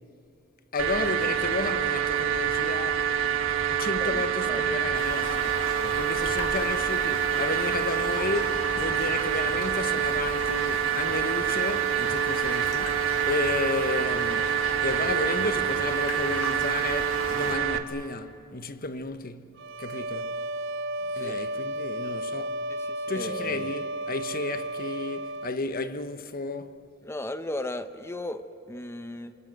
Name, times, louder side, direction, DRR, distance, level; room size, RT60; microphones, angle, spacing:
voice 1, 0.7-3.1 3.6-20.4 21.0-22.6 23.1-26.8, left 3 dB, 45° left, 1.0 m, -33 dB
sound 1, 0.8-17.8, right 9 dB, 85° right, 1.3 m, -26 dB
voice 2, 4.0-4.8 5.8-5.9 21.2-21.4 22.7-23.7 27.0-29.4, left 1 dB, 15° left, 0.9 m, -36 dB
Raindrop, 5.0-17.5, left 3 dB, 90° left, 2.5 m, -39 dB
sound 2, 19.6-25.6, right 1 dB, 65° right, 0.7 m, -33 dB
27.0 x 27.0 x 8.0 m
head